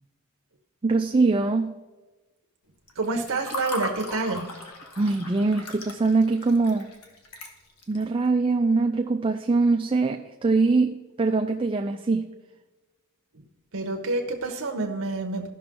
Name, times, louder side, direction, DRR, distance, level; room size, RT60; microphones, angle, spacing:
voice 1, 0.8-1.7 5.0-6.9 7.9-12.3, right 3 dB, 25° right, 3 dB, 0.4 m, -23 dB
Water / Fill (with liquid), 2.9-8.0, left 1 dB, 85° left, 1.4 m, -38 dB
voice 2, 3.0-4.5 13.7-15.5, right 3 dB, 65° right, 3 dB, 0.9 m, -28 dB
14.0 x 5.8 x 3.7 m, 1.2 s
head